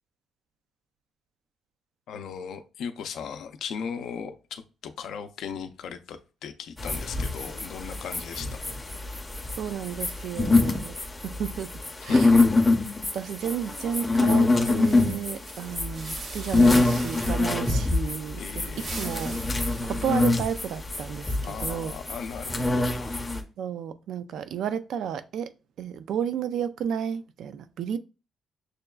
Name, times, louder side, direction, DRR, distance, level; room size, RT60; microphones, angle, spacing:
voice 1, 2.1-8.6 12.1-12.2 18.4-18.9 21.4-23.2, left 7 dB, 70° left, 0.4 m, -38 dB
sound 1, 6.8-23.4, left 2 dB, 10° left, 0.5 m, -25 dB
voice 2, 9.6-11.0 11.2-11.7 12.0-12.3 13.1-18.7 18.9-19.4 19.8-21.9 23.6-25.5 25.8-28.0, right 8 dB, 70° right, 0.3 m, -32 dB
sound 2, 13.5-17.7 18.5-20.9, right 3 dB, 40° right, 0.7 m, -43 dB
6.4 x 2.3 x 2.2 m
cardioid pair, 170°, 0 cm